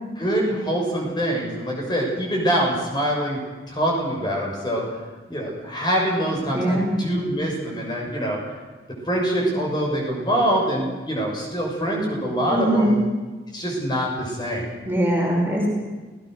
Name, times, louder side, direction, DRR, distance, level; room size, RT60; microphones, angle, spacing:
voice 1, 0.2-3.4 3.7-4.8 5.3-8.4 9.1-13.0 13.5-14.7, equal, 25° left, -1 dB, 6.8 m, -24 dB
voice 2, 6.5-6.9 12.5-13.0 14.9-15.7, right 1 dB, 10° right, -3 dB, 5.5 m, -21 dB
29.0 x 18.0 x 6.6 m, 1.3 s
head